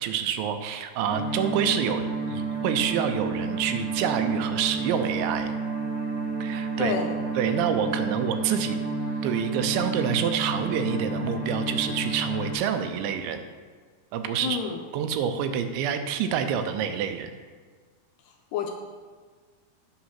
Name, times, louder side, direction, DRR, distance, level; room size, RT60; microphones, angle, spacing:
voice 1, 0.0-5.6 6.4-6.9 7.4-8.8 9.2-13.4 14.1-14.6 14.9-17.3, right 8 dB, 85° right, 8 dB, 3.0 m, -27 dB
sound 1, 1.1-12.5, right 3 dB, 30° left, 1.3 m, -30 dB
voice 2, 6.8-7.2 14.4-14.8 18.5-18.7, left 7 dB, 85° left, 3 dB, 2.6 m, -28 dB
8.6 x 6.3 x 5.7 m, 1.5 s
omnidirectional pair, 5.1 m